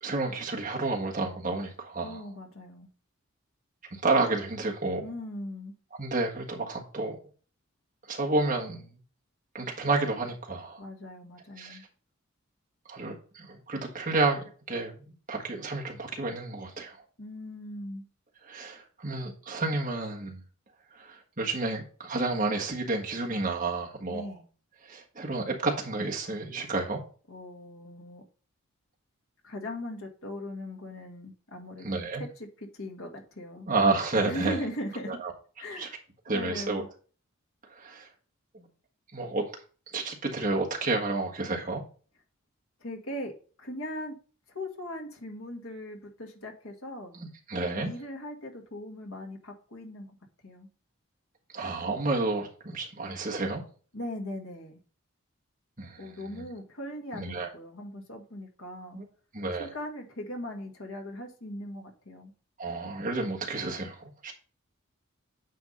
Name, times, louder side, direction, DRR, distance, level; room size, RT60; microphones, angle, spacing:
voice 1, 0.0-2.2 3.9-5.0 6.0-7.2 8.1-8.9 9.5-10.8 11.6-11.8 12.9-14.9 15.3-17.0 18.5-20.4 20.9-24.3 24.8-27.0 31.8-32.2 33.7-34.6 35.1-35.3 35.8-35.9 36.3-36.8 37.7-38.1 38.5-38.7 39.1-39.5 39.9-41.8 47.1-47.9 51.5-53.6 55.8-56.1 56.3-56.5 57.1-57.5 58.9-59.0 59.3-59.7 62.6-64.3, right 3 dB, 35° right, 1.5 m, -30 dB
voice 2, 2.0-2.9 5.0-5.7 10.8-11.8 17.2-18.0 24.1-24.4 27.3-28.2 29.4-33.7 34.2-35.2 35.6-36.0 36.3-36.9 42.8-44.2 44.5-47.1 47.8-50.1 50.4-50.7 53.9-54.8 56.0-59.0 59.6-62.3, left 1 dB, 75° left, 1.8 m, -39 dB
9.2 x 3.6 x 5.3 m
head